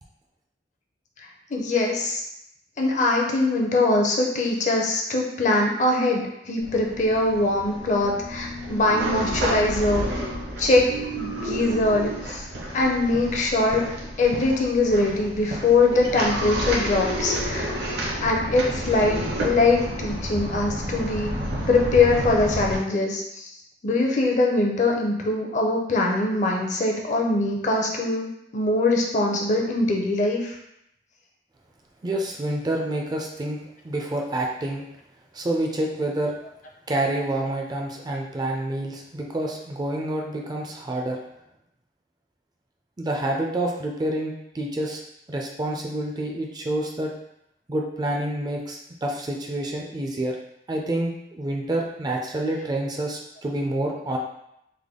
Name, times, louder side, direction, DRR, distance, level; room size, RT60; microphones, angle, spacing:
voice 1, 1.5-2.2 2.8-10.1 10.6-12.4 12.7-13.8 14.2-17.8 18.2-21.4 21.7-23.5 23.8-30.5, left 2 dB, 45° left, 0 dB, 0.5 m, -22 dB
sound 1, 6.6-22.8, equal, 70° right, 0.7 m, -30 dB
voice 2, 32.0-33.6 33.8-34.8 35.3-36.3 36.9-41.2 43.0-45.0 45.3-47.1 47.7-50.4 50.7-54.2, right 1 dB, 25° right, 0 dB, 0.4 m, -28 dB
3.3 x 2.1 x 3.6 m, 0.80 s
head